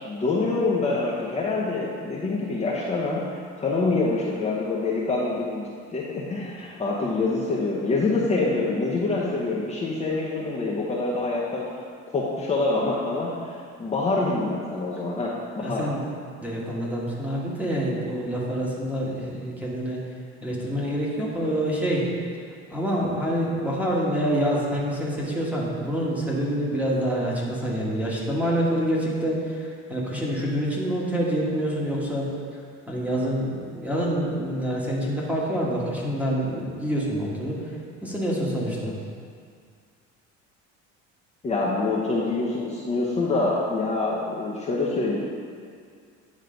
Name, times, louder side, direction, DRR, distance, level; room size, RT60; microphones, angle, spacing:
voice 1, 0.0-3.3 3.6-11.6 12.1-15.8 41.4-45.2, left 3 dB, 20° left, -6 dB, 0.9 m, -26 dB
voice 2, 15.6-16.0 16.4-20.0 20.4-22.1 22.7-38.9, equal, 5° right, -5 dB, 1.4 m, -27 dB
9.6 x 3.2 x 5.1 m, 2.2 s
cardioid pair, 120°, 30 cm